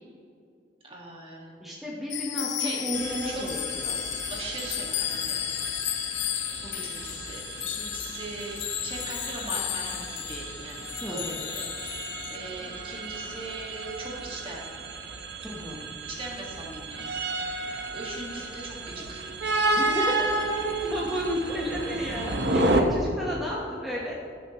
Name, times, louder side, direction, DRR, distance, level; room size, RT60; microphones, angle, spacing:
voice 1, 0.8-1.7 2.6-2.9 3.3-3.4 4.3-5.4 6.3-14.7 16.1-17.1 17.6-19.2, right 2 dB, 30° right, -2 dB, 1.9 m, -40 dB
voice 2, 1.6-4.0 11.0-11.4 15.4-15.8 19.8-20.2 20.5-24.1, equal, ahead, -5 dB, 1.1 m, -32 dB
sound 1, 2.1-12.4, left 12 dB, 85° left, 0.5 m, -33 dB
sound 2, 2.9-22.8, right 2 dB, 70° right, 0.9 m, -32 dB
17.0 x 7.4 x 3.1 m, 2.5 s
head